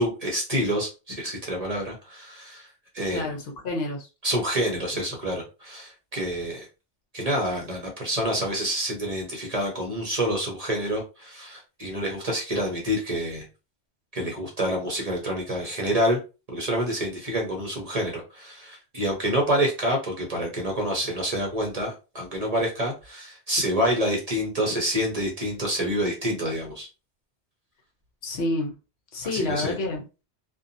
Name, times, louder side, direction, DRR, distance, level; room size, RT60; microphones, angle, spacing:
voice 1, 0.0-2.7 2.9-3.4 4.2-6.7 7.1-13.4 14.1-16.2 16.5-26.9 29.2-29.7, equal, 40° right, 0.7 m, -27 dB
voice 2, 3.1-4.1 28.2-28.7 29.1-30.0, left 2 dB, 65° left, 0.9 m, -28 dB
2.7 x 2.2 x 2.5 m
omnidirectional pair, 1.2 m